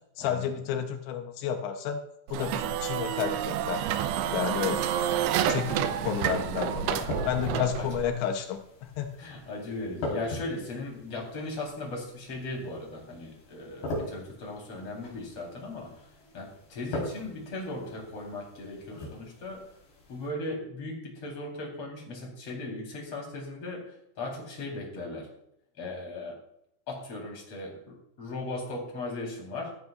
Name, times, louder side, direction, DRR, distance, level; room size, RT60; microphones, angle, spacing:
voice 1, 0.2-2.0 2.3-3.8 4.3-4.8 5.4-9.1, left 9 dB, 85° left, 5 dB, 3.3 m, -31 dB
sound 1, 2.3-8.1, right 10 dB, 80° right, 2.8 m, -29 dB
sound 2, 4.9-20.3, left 2 dB, 65° left, 6.4 m, -42 dB
voice 2, 6.8-7.9 9.2-16.0 16.3-19.7 20.1-25.3 25.8-26.4 26.9-29.7, left 2 dB, 35° left, -1 dB, 4.6 m, -38 dB
16.5 x 14.0 x 2.5 m, 0.74 s
omnidirectional pair, 5.0 m